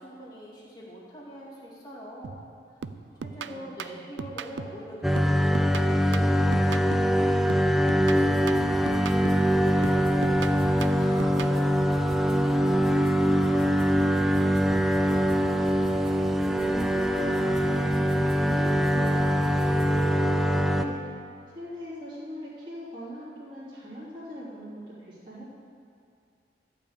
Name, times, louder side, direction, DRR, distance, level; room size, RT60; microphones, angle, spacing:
voice 1, 0.0-2.4 3.2-8.8 9.6-15.2, right 1 dB, 25° left, -5 dB, 2.6 m, -43 dB
sound 1, 2.2-2.5 2.8-4.9 5.2-7.2 7.5-9.5 9.8-11.6, right 5 dB, 90° right, 0.5 m, -38 dB
voice 2, 3.4-4.0 16.5-20.9 21.5-25.5, equal, 30° right, -10 dB, 3.5 m, -41 dB
sound 2, 5.0-20.8, equal, ahead, 0.5 m, -23 dB
sound 3, 8.1-20.1, right 1 dB, 70° right, 2.2 m, -43 dB
14.0 x 6.0 x 8.2 m, 2.5 s
head